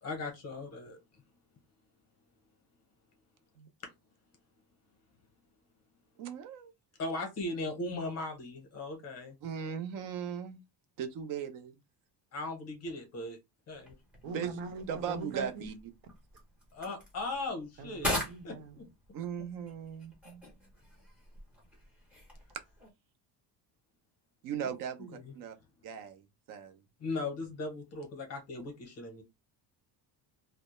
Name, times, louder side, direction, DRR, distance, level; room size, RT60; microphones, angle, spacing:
voice 1, 0.0-1.0 7.0-9.4 12.3-13.4 13.7-13.9 16.7-18.1 18.4-18.5 24.6-24.7 25.0-25.3 27.0-29.2, left 2 dB, 35° left, 0.7 m, -38 dB
voice 2, 6.2-6.7 9.4-10.6 11.0-11.8 14.3-14.5 14.9-15.7 19.1-20.4 24.4-25.5 25.8-26.2 26.5-26.8, right 8 dB, 45° right, 0.4 m, -38 dB
sound 1, 13.7-22.9, left 1 dB, 5° right, 0.6 m, -42 dB
voice 3, 14.2-15.7 17.8-18.9, right 3 dB, 80° right, 0.8 m, -42 dB
2.1 x 2.0 x 2.9 m
cardioid pair, 175°, 47 cm